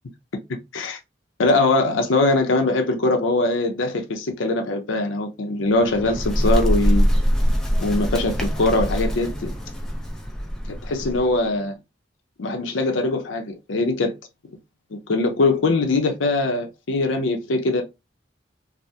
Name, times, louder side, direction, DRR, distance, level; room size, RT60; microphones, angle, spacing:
voice 1, 1.4-7.1 7.8-9.5 10.8-11.7 12.4-14.1 14.9-17.8, left 2 dB, 85° left, 0.6 m, -22 dB
Bird, 5.7-11.4, equal, 5° left, 0.4 m, -23 dB
3.3 x 2.0 x 2.7 m
head